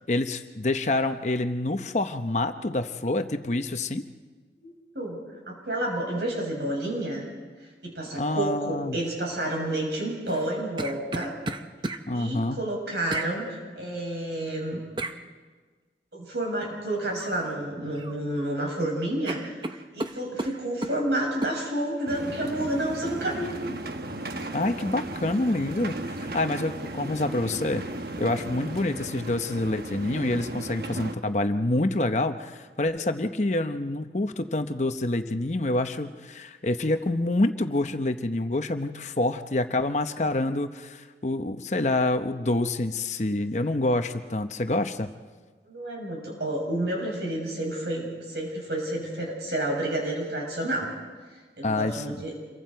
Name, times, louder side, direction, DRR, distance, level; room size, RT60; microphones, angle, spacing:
voice 1, 0.1-4.0 8.2-9.0 12.1-12.6 24.5-27.8 28.2-45.1 51.6-52.0, left 2 dB, 40° left, 8 dB, 0.8 m, -27 dB
voice 2, 4.6-5.2 5.5-7.2 7.8-11.3 12.1-14.8 16.1-19.5 19.9-23.8 28.4-28.7 45.6-50.9 51.6-52.3, right 1 dB, 75° right, -1 dB, 7.0 m, -30 dB
sound 1, 10.3-12.0 13.1-13.3 15.0-15.2 17.2-17.5 17.8-18.5 18.8-18.9 19.3-21.0 21.4-21.6, right 2 dB, 25° right, 0.7 m, -34 dB
sound 2, 22.1-31.1, right 2 dB, 60° right, 1.1 m, -36 dB
27.5 x 23.0 x 4.6 m, 1.4 s
head